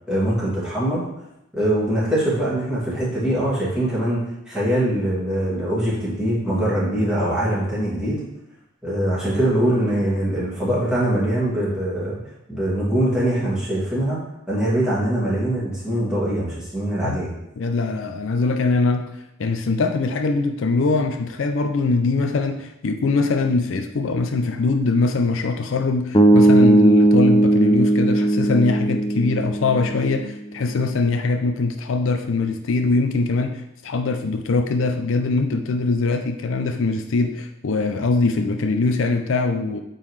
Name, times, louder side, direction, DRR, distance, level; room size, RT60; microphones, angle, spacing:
voice 1, 0.1-1.0 1.5-8.2 8.8-12.2 12.5-14.2 14.5-17.3, right 1 dB, 5° right, -9 dB, 2.3 m, -22 dB
voice 2, 17.6-19.1 19.4-39.8, left 3 dB, 70° left, 6 dB, 0.5 m, -22 dB
sound 1, 26.1-30.3, right 1 dB, 25° left, 0.6 m, -17 dB
8.4 x 3.8 x 3.2 m, 0.85 s
head